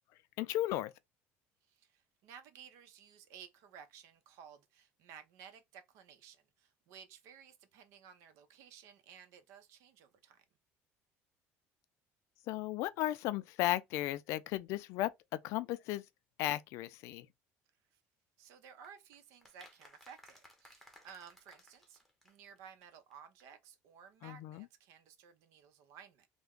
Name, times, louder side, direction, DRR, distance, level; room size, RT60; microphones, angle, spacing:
voice 1, 0.4-0.9 12.5-15.1 15.4-16.0 16.4-17.3 24.2-24.7, left 15 dB, 65° left, 0.4 m, -35 dB
voice 2, 1.7-10.4 18.4-26.3, right 7 dB, 70° right, 0.7 m, -56 dB
sound 1, 18.8-22.6 22.8-22.9 23.1-23.2 23.4-23.5, left 1 dB, ahead, 0.8 m, -60 dB
3.4 x 2.1 x 3.6 m
cardioid pair, 150°, 5 cm